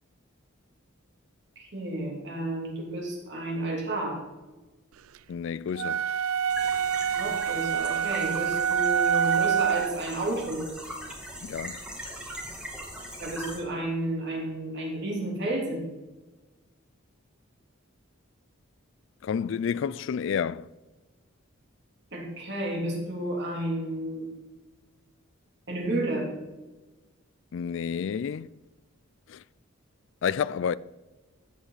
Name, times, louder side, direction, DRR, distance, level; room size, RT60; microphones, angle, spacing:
voice 1, 1.6-4.2 7.1-10.7 13.2-15.8 22.1-24.3 25.7-26.3, right 1 dB, 55° right, 3.2 m, -31 dB
voice 2, 5.3-6.0 11.4-11.8 19.2-20.7 27.5-28.5 29.3-29.4 30.2-30.8, left 7 dB, 60° left, 0.3 m, -30 dB
sound 1, 5.8-10.0, right 8 dB, 80° right, 0.4 m, -26 dB
sound 2, 6.5-13.6, equal, 5° right, 2.0 m, -40 dB
14.5 x 8.2 x 4.0 m
head